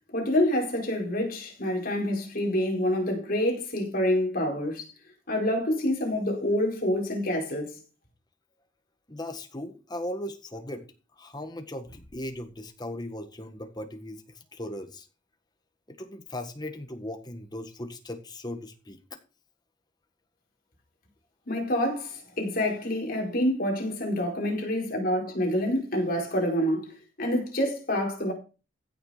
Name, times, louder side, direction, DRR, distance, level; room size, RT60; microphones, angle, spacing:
voice 1, 0.1-4.9 5.3-7.8 21.5-28.3, left 1 dB, 50° left, 4.7 m, -27 dB
voice 2, 9.1-10.8 11.2-14.2 14.5-15.0 15.9-19.2, left 1 dB, 20° left, 1.6 m, -38 dB
15.5 x 6.8 x 5.0 m
head